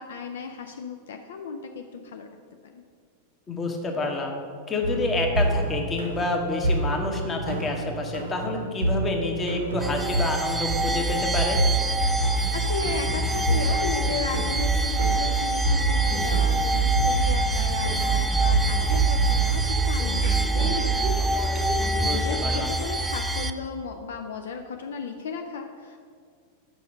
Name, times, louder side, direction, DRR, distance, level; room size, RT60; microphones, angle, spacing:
voice 1, 0.0-2.3 2.6-2.8 8.5-8.7 12.5-26.0, left 5 dB, 60° left, 5 dB, 0.4 m, -35 dB
voice 2, 3.5-4.4 4.7-11.6 22.0-22.8, left 2 dB, 20° left, 2 dB, 1.1 m, -28 dB
sound 1, 4.8-19.9, right 1 dB, 70° right, 0.8 m, -29 dB
sound 2, 9.8-23.5, right 3 dB, 5° right, 0.4 m, -25 dB
sound 3, 13.2-22.5, right 2 dB, 25° right, 0.8 m, -39 dB
5.4 x 5.4 x 6.2 m, 2.1 s
figure-of-eight pair, 90°, 0 cm